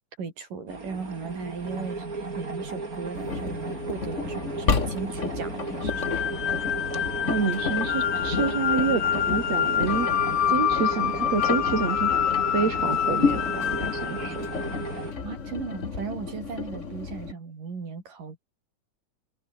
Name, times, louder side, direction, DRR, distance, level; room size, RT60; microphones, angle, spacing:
voice 1, 0.2-6.0 15.2-18.4, right 5 dB, 75° right, 6.8 m, -37 dB
sound 1, 0.7-15.1, right 3 dB, 25° right, 3.7 m, -35 dB
Engine, 3.1-17.3, left 5 dB, 30° left, 1.5 m, -32 dB
sound 2, 5.9-15.1, left 9 dB, 55° left, 2.3 m, -27 dB
voice 2, 7.3-12.1 12.5-14.5, right 6 dB, 55° right, 4.4 m, -28 dB
open air
omnidirectional pair, 3.8 m